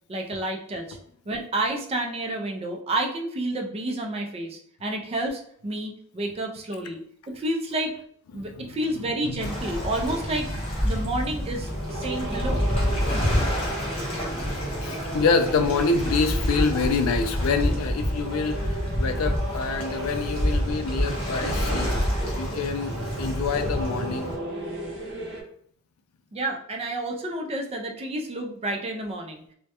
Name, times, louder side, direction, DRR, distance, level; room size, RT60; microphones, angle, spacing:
voice 1, 0.1-1.0 1.3-7.9 8.3-10.5 10.8-12.7 26.3-29.4, right 1 dB, 30° right, 2 dB, 0.3 m, -30 dB
voice 2, 8.3-8.8 14.8-21.9 22.4-22.9 23.2-24.3, left 4 dB, 85° left, 7 dB, 0.3 m, -26 dB
sound 1, 9.3-25.4, right 1 dB, 55° right, 0.9 m, -37 dB
Waves surf, 9.4-24.4, equal, 25° left, 0.7 m, -28 dB
2.2 x 2.1 x 2.8 m, 0.63 s
head